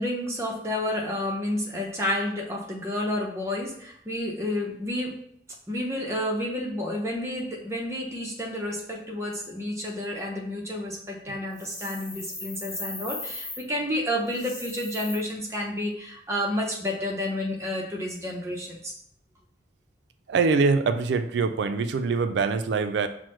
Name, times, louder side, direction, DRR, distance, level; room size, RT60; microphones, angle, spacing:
voice 1, 0.0-5.2 5.7-19.0, left 1 dB, 15° right, -1 dB, 0.6 m, -30 dB
sound 1, 11.5-13.6 14.3-15.1, left 2 dB, 20° left, 1.1 m, -38 dB
voice 2, 20.3-23.1, right 4 dB, 70° right, 9 dB, 0.3 m, -24 dB
5.9 x 2.1 x 3.0 m, 0.67 s
head